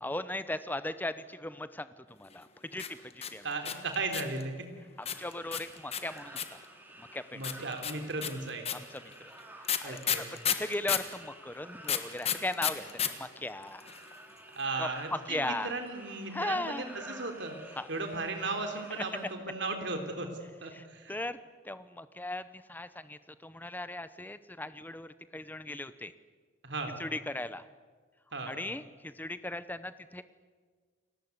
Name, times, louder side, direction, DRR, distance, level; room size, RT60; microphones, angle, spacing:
voice 1, 0.0-1.9 2.2-2.5 2.7-3.4 5.2-6.6 7.1-7.4 8.7-9.0 9.8-10.0 10.6-13.8 14.8-15.7 16.3-16.9 17.8-17.9 20.7-20.8 21.1-21.4 21.7-26.1 27.0-27.6 28.5-30.2, left 1 dB, 10° left, 13 dB, 0.8 m, -37 dB
sound 1, 2.7-4.4 5.1-6.7 7.4-11.1 11.8-13.1 13.4-13.5 13.6-14.1, left 9 dB, 30° left, 1.5 m, -31 dB
voice 2, 3.4-4.5 7.3-8.7 9.8-10.3 12.5-12.7 14.6-20.3 20.6-21.2 26.6-27.0 28.3-28.6, right 3 dB, 60° right, 5 dB, 3.5 m, -36 dB
sound 2, 5.0-19.3, right 1 dB, 10° right, 2.6 m, -52 dB
29.5 x 19.5 x 8.1 m, 1.5 s
head